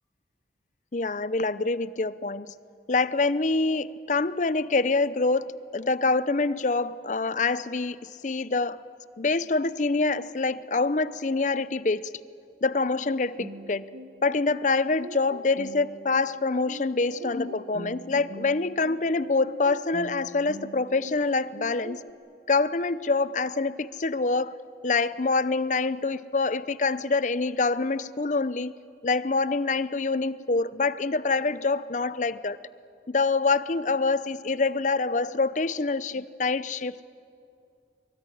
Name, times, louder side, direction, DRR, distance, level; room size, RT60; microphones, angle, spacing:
voice 1, 0.9-2.5 2.9-5.5 5.7-8.8 9.2-12.1 12.6-13.8 14.2-22.0 22.5-24.5 24.8-28.7 29.0-32.6 33.1-37.0, left 3 dB, 45° left, 16 dB, 0.6 m, -26 dB
sound 1, 13.4-22.1, equal, 60° right, 1.2 m, -43 dB
23.5 x 23.5 x 9.9 m, 2.5 s
head